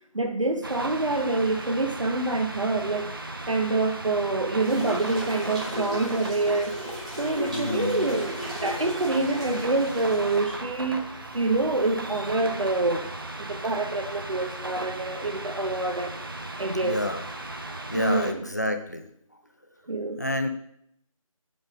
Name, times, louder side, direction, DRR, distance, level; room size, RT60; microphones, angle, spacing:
voice 1, 0.1-3.2 3.5-6.8 7.2-11.0 11.3-13.1 13.4-16.2 16.6-17.0 17.9-18.5 19.9-20.2, right 2 dB, 60° right, 1.1 m, -26 dB
sound 1, 0.6-18.3, right 2 dB, 40° right, 0.8 m, -37 dB
sound 2, 4.6-10.5, equal, 10° right, 1.3 m, -36 dB
voice 2, 7.5-8.0 16.8-17.2 17.9-19.1 20.2-20.5, left 1 dB, 30° left, 0.5 m, -28 dB
5.4 x 5.3 x 6.1 m
figure-of-eight pair, 165°, 18 cm